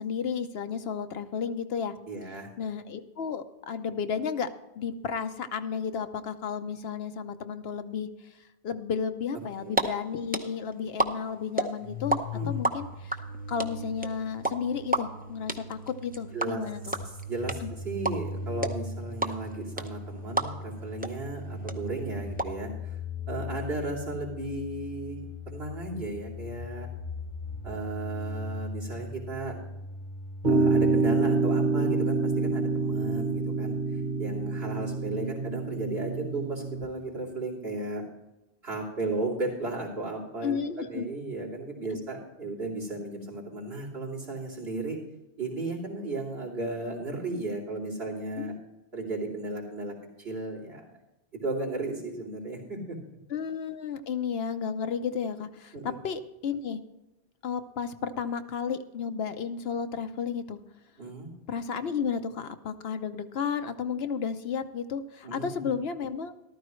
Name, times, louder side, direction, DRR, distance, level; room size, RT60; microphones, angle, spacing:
voice 1, 0.0-2.0 2.6-4.5 4.8-8.3 8.6-12.2 12.5-13.2 13.5-17.0 17.6-17.7 40.4-41.1 48.4-48.6 53.3-56.8 57.4-60.6 61.5-66.3, left 6 dB, 70° left, 9 dB, 1.0 m, -33 dB
voice 2, 2.1-2.5 9.6-9.7 12.3-12.5 16.3-16.6 17.3-23.0 23.3-26.9 27.6-29.6 30.4-38.0 38.6-45.0 45.4-48.5 48.9-50.8 51.3-53.0 55.7-55.9 61.0-61.3 65.2-65.7, right 2 dB, 70° right, -1 dB, 3.2 m, -35 dB
sound 1, 9.4-9.8 10.1-12.2 12.4-20.8 21.0-21.1 21.4-22.4, right 1 dB, 10° right, 0.6 m, -28 dB
sound 2, 11.8-31.0, left 2 dB, 30° left, 0.9 m, -39 dB
sound 3, 30.4-36.8, right 3 dB, 45° right, 1.7 m, -27 dB
14.0 x 12.5 x 3.1 m, 0.98 s
omnidirectional pair, 1.1 m